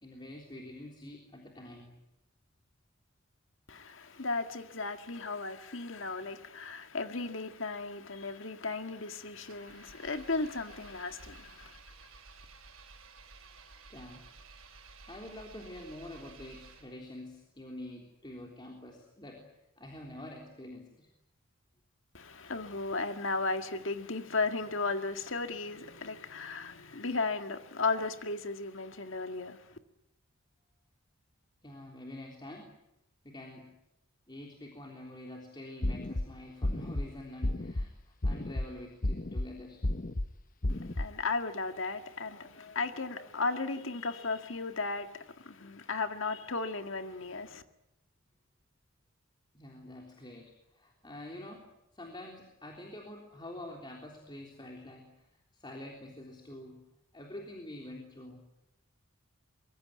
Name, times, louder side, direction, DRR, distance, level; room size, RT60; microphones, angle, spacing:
voice 1, 0.0-2.0 11.9-12.6 13.9-14.2 15.1-19.5 19.8-21.1 29.4-29.5 31.6-32.7 33.2-33.7 34.3-39.9 49.5-51.7 51.9-55.3 55.5-56.8 57.1-58.4, left 1 dB, 20° left, 3.5 m, -47 dB
voice 2, 3.7-11.8 22.1-29.8 40.7-47.6, left 3 dB, 65° left, 1.9 m, -35 dB
Engine, 9.5-17.2, right 4 dB, 85° right, 5.8 m, -54 dB
sound 1, 35.8-36.2 36.6-37.0 37.4-37.8 38.2-38.7 39.0-39.5 39.8-40.3 40.6-41.1, left 1 dB, 40° left, 0.9 m, -31 dB
24.0 x 22.5 x 9.4 m
head